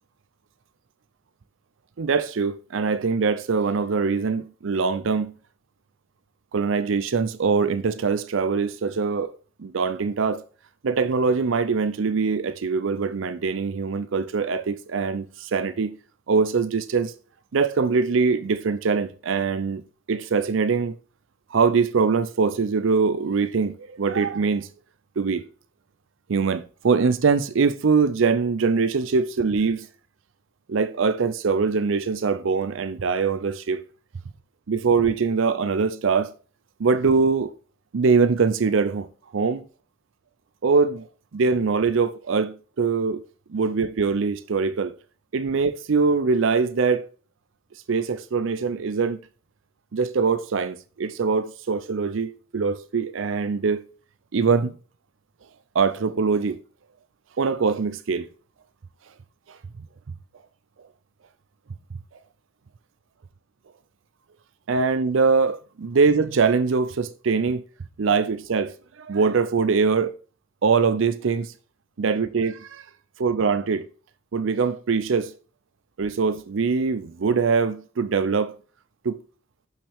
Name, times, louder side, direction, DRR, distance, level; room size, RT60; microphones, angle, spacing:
voice 1, 2.0-5.3 6.5-9.3 9.6-10.4 10.8-15.9 16.3-17.1 17.5-19.8 20.1-20.9 21.5-24.7 25.2-25.5 26.3-29.9 30.7-33.8 34.7-36.3 36.8-37.5 37.9-39.1 39.3-39.6 40.6-41.1 41.3-43.2 43.5-44.9 45.3-47.1 47.9-49.2 49.9-53.8 54.3-54.7 55.7-56.6 57.4-58.3 59.5-59.6 64.7-67.6 68.0-70.1 70.6-71.5 72.0-72.8 73.2-73.9 74.3-75.3 76.0-78.5 79.0-79.2, right 5 dB, 70° right, 0.5 m, -23 dB
8.7 x 5.6 x 3.5 m
head